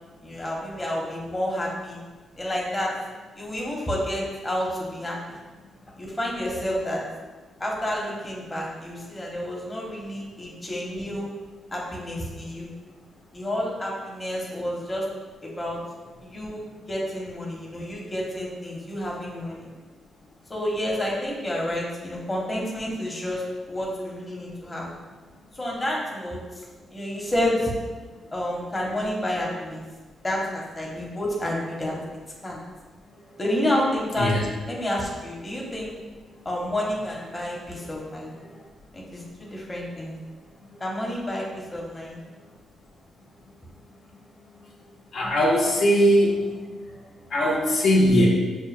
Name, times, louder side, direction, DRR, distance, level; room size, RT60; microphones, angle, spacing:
voice 1, 0.2-2.0 2.4-2.9 3.3-5.2 5.9-7.0 7.6-11.3 11.7-12.7 13.3-15.0 15.4-15.8 16.2-19.7 20.5-24.9 25.5-26.6 26.9-27.7 28.3-29.8 30.2-32.0 32.4-32.6 33.4-35.9 36.4-38.3 38.9-40.2 40.8-42.2, left 1 dB, 20° left, -3 dB, 1.0 m, -29 dB
voice 2, 45.1-46.3 47.3-48.3, equal, 70° left, -4 dB, 0.9 m, -19 dB
5.9 x 2.2 x 3.3 m, 1.3 s
cardioid pair, 85°, 0 cm